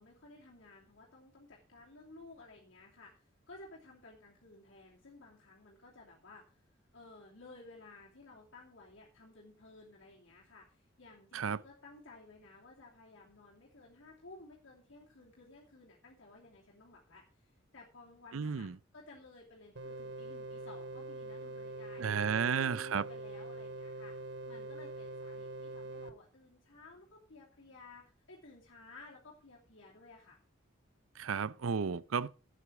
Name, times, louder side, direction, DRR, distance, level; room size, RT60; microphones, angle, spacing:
voice 1, 0.0-6.5 6.9-30.4, left 2 dB, 70° left, 2.8 m, -56 dB
voice 2, 18.3-18.7 22.0-23.0 31.2-32.3, right 6 dB, 90° right, 0.5 m, -33 dB
sound 1, 19.8-26.1, right 2 dB, 60° right, 1.1 m, -44 dB
12.5 x 8.4 x 4.8 m
head